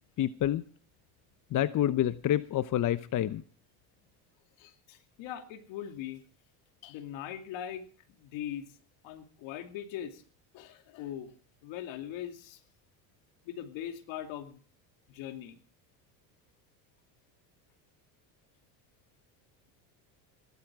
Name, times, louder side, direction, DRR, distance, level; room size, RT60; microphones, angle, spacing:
voice 1, 0.2-0.6 1.5-3.4, left 12 dB, 40° left, 13 dB, 0.8 m, -28 dB
voice 2, 4.6-6.2 6.8-8.6 9.0-10.2 10.5-11.3 11.6-12.6 13.4-14.6 15.1-15.6, left 10 dB, 65° left, 5 dB, 2.7 m, -41 dB
17.5 x 12.0 x 4.8 m, 0.41 s
supercardioid pair, 95°, 48 cm